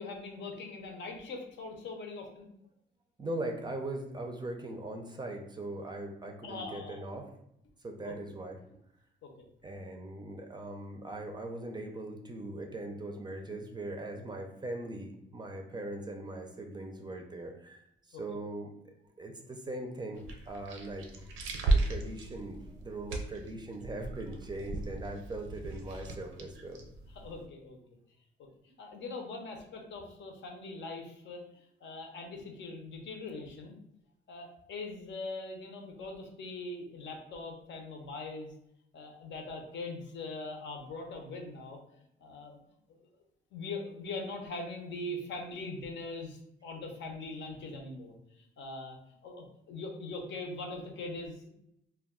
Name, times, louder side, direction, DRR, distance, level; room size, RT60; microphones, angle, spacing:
voice 1, 0.0-2.5 6.4-7.1 8.0-8.1 9.2-9.3 18.1-18.2 27.1-27.8 28.6-31.4 31.8-33.8 34.3-38.5 38.9-41.8 42.2-42.6 43.5-49.0 49.2-51.5, left 2 dB, 65° left, 2 dB, 0.7 m, -41 dB
voice 2, 3.2-7.3 7.8-8.6 9.6-17.8 18.1-21.1 21.7-26.8, right 2 dB, 20° right, 3 dB, 0.4 m, -40 dB
sound 1, 20.1-27.5, right 2 dB, 85° right, 0.5 m, -35 dB
2.2 x 2.2 x 3.5 m, 0.77 s
cardioid pair, 90°, 20 cm